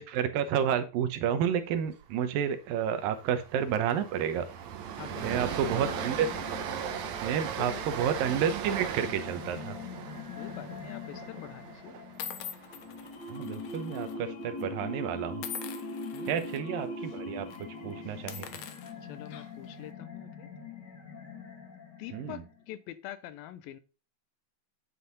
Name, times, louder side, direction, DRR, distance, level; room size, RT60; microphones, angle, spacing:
voice 1, 0.0-4.5 5.2-6.3 7.2-9.8 13.3-15.5 16.3-18.5 22.1-22.4, right 8 dB, 85° right, 2.7 m, -30 dB
Train, 1.8-2.0 2.3-2.5 2.8-13.0, right 9 dB, 65° right, 2.1 m, -38 dB
sound 1, 4.8-22.7, left 3 dB, 30° left, 3.1 m, -42 dB
voice 2, 5.0-5.9 7.6-7.9 10.4-11.9 16.1-16.5 19.0-20.5 22.0-23.8, left 13 dB, 85° left, 2.6 m, -45 dB
sound 2, 10.5-10.8 11.6-11.7 12.2-14.1 14.4-14.6 15.4-16.6 17.0-17.2 17.5-17.6 18.1-19.7, left 8 dB, 65° left, 1.6 m, -43 dB
9.9 x 7.7 x 4.1 m
omnidirectional pair, 4.1 m